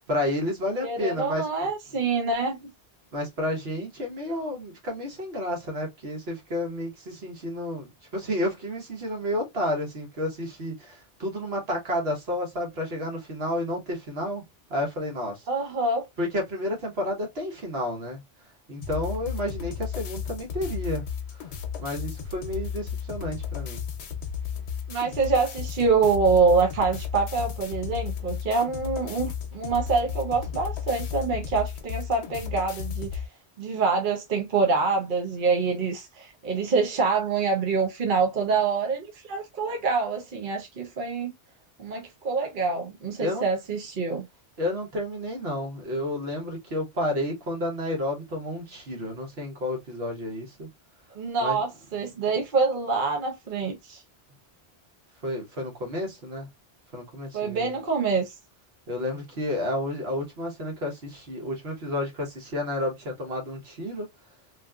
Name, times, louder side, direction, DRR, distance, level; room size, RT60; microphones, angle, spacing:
voice 1, 0.1-1.5 3.1-14.4 14.7-15.4 16.2-18.2 18.7-21.0 21.8-23.8 43.2-43.5 44.6-50.7 51.4-51.6 55.2-56.5 56.9-57.7 58.9-64.1, left 1 dB, 75° right, 1.4 m, -31 dB
voice 2, 0.8-2.7 15.5-16.1 24.9-33.2 33.6-41.3 41.8-44.3 51.1-54.0 57.3-58.3, right 4 dB, 55° right, 0.9 m, -26 dB
sound 1, 18.8-33.3, left 7 dB, 85° left, 0.9 m, -34 dB
3.0 x 2.6 x 2.3 m
omnidirectional pair, 1.1 m